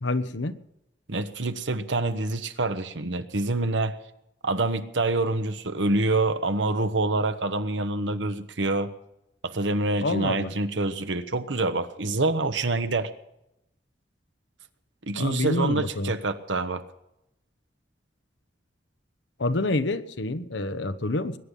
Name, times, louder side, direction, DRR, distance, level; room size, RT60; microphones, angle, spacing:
voice 1, 0.0-0.5 10.0-10.5 15.1-16.1 19.4-21.4, left 2 dB, 80° left, 11 dB, 1.0 m, -27 dB
voice 2, 1.1-3.9 4.4-8.9 9.4-13.1 15.0-16.8, right 2 dB, 85° right, 9 dB, 1.2 m, -26 dB
21.5 x 10.0 x 5.4 m, 0.87 s
head